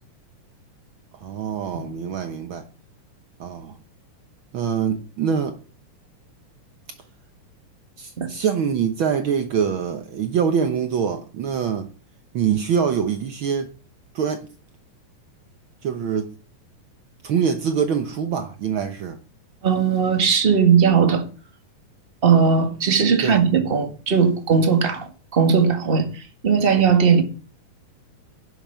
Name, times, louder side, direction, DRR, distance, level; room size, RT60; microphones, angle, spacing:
voice 1, 1.1-2.7 3.4-3.8 4.5-5.6 8.0-11.9 12.3-13.7 14.1-14.5 15.8-16.3 17.2-19.2 23.2-23.4, right 7 dB, 90° right, 1.1 m, -24 dB
voice 2, 19.6-21.3 22.2-27.2, right 6 dB, 25° right, 1.2 m, -18 dB
11.0 x 7.1 x 6.9 m
omnidirectional pair, 3.7 m